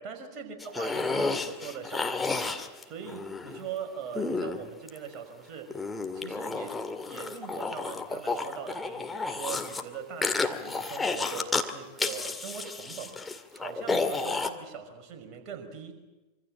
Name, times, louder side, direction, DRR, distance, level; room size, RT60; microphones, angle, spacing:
voice 1, 0.0-5.8 6.1-6.8 7.1-15.9, right 7 dB, 35° right, 4 dB, 5.4 m, -41 dB
sound 1, 0.6-3.6 4.2-5.1 5.7-9.8 10.2-11.7 12.0-14.5, left 3 dB, 10° left, 2.1 m, -31 dB
26.5 x 25.5 x 7.8 m, 1.1 s
figure-of-eight pair, 90°, 0 cm